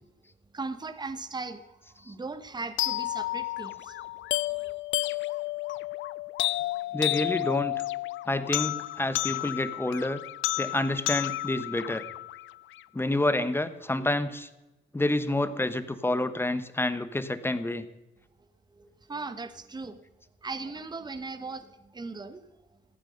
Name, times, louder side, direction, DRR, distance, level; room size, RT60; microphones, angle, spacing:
voice 1, 0.5-4.7 18.7-20.0 20.4-22.4, right 3 dB, 20° right, 12 dB, 1.1 m, -39 dB
sound 1, 2.8-12.8, left 16 dB, 75° left, 0.4 m, -31 dB
voice 2, 6.9-7.7 8.3-10.2 10.6-12.0 12.9-14.5 14.9-17.8, left 2 dB, 10° left, 13 dB, 1.1 m, -28 dB
15.0 x 9.1 x 6.4 m, 1.0 s
cardioid pair, 90°, 20 cm